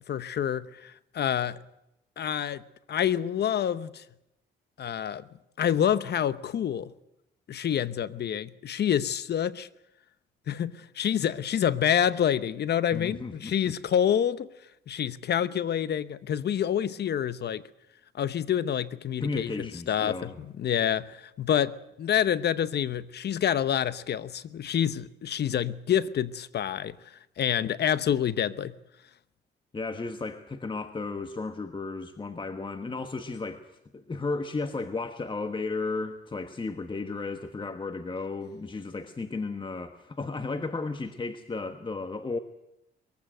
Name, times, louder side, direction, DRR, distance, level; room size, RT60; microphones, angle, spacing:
voice 1, 0.1-1.6 2.2-2.6 2.9-4.0 4.8-5.2 5.6-6.9 7.5-9.7 10.5-14.5 14.9-17.6 18.1-27.0 27.4-28.7, left 9 dB, 55° left, 1.0 m, -27 dB
voice 2, 12.9-13.5 19.2-20.4 29.7-42.4, left 3 dB, 25° left, 1.3 m, -34 dB
22.0 x 15.5 x 9.2 m
cardioid pair, 90°, 20 cm